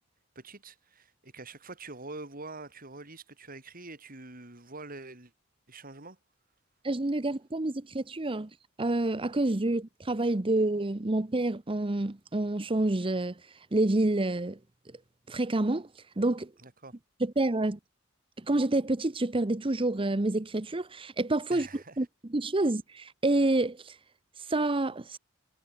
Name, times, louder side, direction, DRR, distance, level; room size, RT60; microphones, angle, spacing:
voice 1, 0.4-5.3 5.7-6.2 16.6-17.0 21.5-22.0, right 3 dB, 45° right, 5.1 m, -45 dB
voice 2, 6.8-8.5 8.8-13.3 13.7-14.6 15.3-15.9 16.2-16.5 17.2-17.8 18.4-21.7 22.0-22.1 22.3-23.9 24.5-25.2, right 2 dB, 25° right, 0.9 m, -28 dB
head